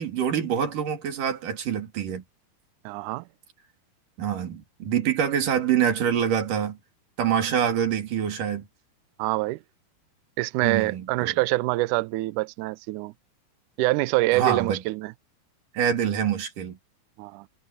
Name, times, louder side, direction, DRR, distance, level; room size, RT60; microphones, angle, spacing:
voice 1, 0.0-2.2 4.2-6.8 7.2-8.7 10.6-11.4 14.3-14.8 15.7-16.8, right 8 dB, 60° right, 3.9 m, -25 dB
voice 2, 2.9-3.2 9.2-9.6 10.4-13.1 13.8-15.1 17.2-17.5, right 20 dB, 85° right, 1.8 m, -25 dB
omnidirectional pair, 4.3 m